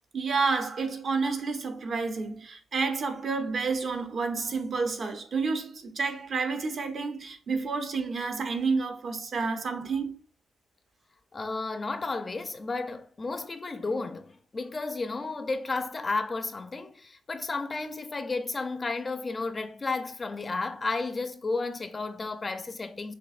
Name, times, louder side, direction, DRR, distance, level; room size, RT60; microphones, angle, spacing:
voice 1, 0.1-10.1, right 4 dB, 55° right, 0.8 m, -30 dB
voice 2, 11.3-23.1, left 3 dB, 30° left, 0.4 m, -32 dB
6.3 x 2.5 x 2.4 m
cardioid pair, 90°, 0 cm